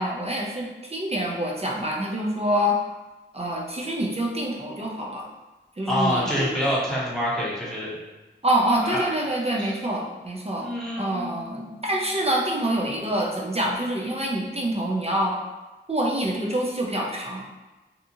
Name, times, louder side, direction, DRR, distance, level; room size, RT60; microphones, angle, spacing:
voice 1, 0.0-2.8 3.3-5.3 5.8-6.6 8.4-10.7 11.0-15.4 15.9-17.4, right 1 dB, 30° right, -2 dB, 0.5 m, -26 dB
voice 2, 5.9-8.0 8.8-9.0 9.6-9.7 10.6-11.9, equal, ahead, -8 dB, 1.0 m, -27 dB
2.8 x 2.3 x 2.6 m, 1.1 s
wide cardioid pair, 45°, 20 cm